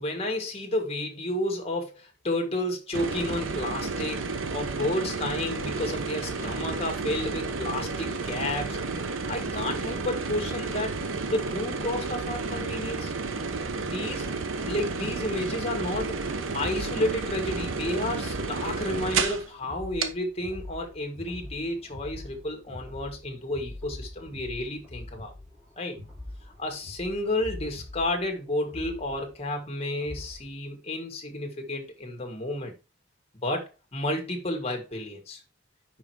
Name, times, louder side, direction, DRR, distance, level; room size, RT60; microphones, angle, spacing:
voice 1, 0.0-8.8 9.1-10.9 11.3-13.1 13.8-14.3 14.6-16.2 16.5-25.3 25.8-26.0 26.4-32.7 33.4-35.4, left 1 dB, 30° left, 1.8 m, -31 dB
sound 1, 2.9-19.5 20.0-20.1, right 4 dB, 80° right, 0.9 m, -31 dB
sound 2, 15.7-30.5, left 1 dB, 10° right, 3.5 m, -43 dB
5.6 x 5.0 x 4.7 m
head